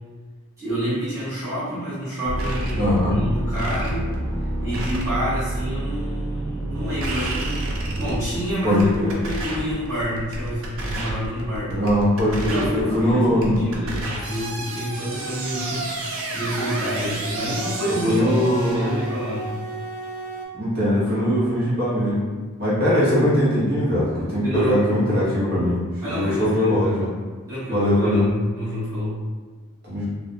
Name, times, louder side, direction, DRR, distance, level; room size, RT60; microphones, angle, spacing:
voice 1, 0.6-4.1 4.6-11.9 12.5-19.6 24.4-24.8 26.0-27.0 27.5-28.3 28.5-29.2, equal, 15° right, -14 dB, 0.9 m, -28 dB
sound 1, 2.2-20.5, right 1 dB, 65° right, 0.4 m, -29 dB
voice 2, 2.8-3.2 8.6-9.2 11.7-13.8 17.9-19.0 20.5-22.3 22.6-27.1 27.7-28.3 29.8-30.1, left 1 dB, 45° right, -8 dB, 0.8 m, -21 dB
2.2 x 2.1 x 2.7 m, 1.3 s
head